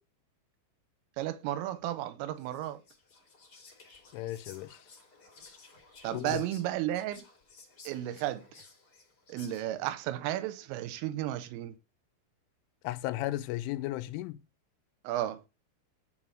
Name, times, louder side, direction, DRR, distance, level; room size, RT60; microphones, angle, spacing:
voice 1, 1.2-2.8 6.0-7.2 7.8-8.4 9.3-11.8 15.0-15.4, right 13 dB, 85° right, 3.4 m, -33 dB
Whispering, 2.4-9.9, left 4 dB, 30° left, 1.8 m, -56 dB
voice 2, 4.1-4.8 6.1-6.4 12.8-14.4, left 16 dB, 80° left, 3.0 m, -35 dB
10.0 x 4.7 x 7.4 m
omnidirectional pair, 5.9 m